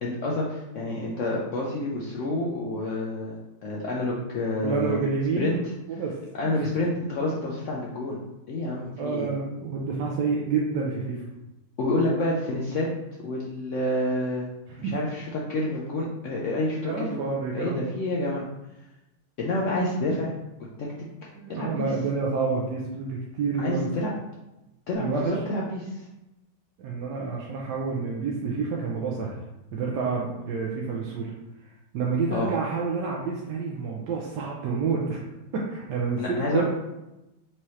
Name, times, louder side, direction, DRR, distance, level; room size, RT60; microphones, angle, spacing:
voice 1, 0.0-3.4 3.6-5.1 5.4-5.6 6.3-8.2 8.5-9.3 11.8-12.9 13.2-14.5 14.8-17.2 17.5-18.5 19.4-20.3 20.8-20.9 21.5-21.9 23.6-24.1 24.9-26.1 32.3-32.5 36.2-36.6, left 1 dB, 75° left, -3 dB, 0.7 m, -28 dB
voice 2, 4.6-5.6 5.9-6.2 6.6-6.7 9.0-11.2 14.8-15.0 16.9-17.8 21.4-23.9 25.0-25.4 26.8-29.4 29.7-31.3 31.9-35.2 35.5-36.6, right 4 dB, 80° right, -3 dB, 1.2 m, -28 dB
4.7 x 2.8 x 3.1 m, 0.96 s
omnidirectional pair, 1.9 m